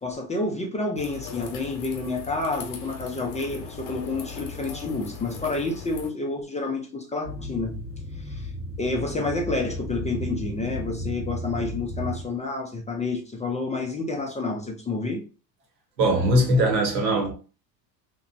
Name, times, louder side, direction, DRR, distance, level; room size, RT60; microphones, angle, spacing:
voice 1, 0.0-7.7 8.2-8.5 8.8-15.2, left 3 dB, 15° left, 0.4 m, -29 dB
sound 1, 1.0-6.1, left 5 dB, 65° left, 0.8 m, -39 dB
sound 2, 7.2-12.3, equal, 25° right, 0.9 m, -34 dB
voice 2, 16.0-17.3, right 1 dB, 80° right, 1.1 m, -21 dB
2.9 x 2.1 x 2.5 m
hypercardioid pair, 75°, 50 cm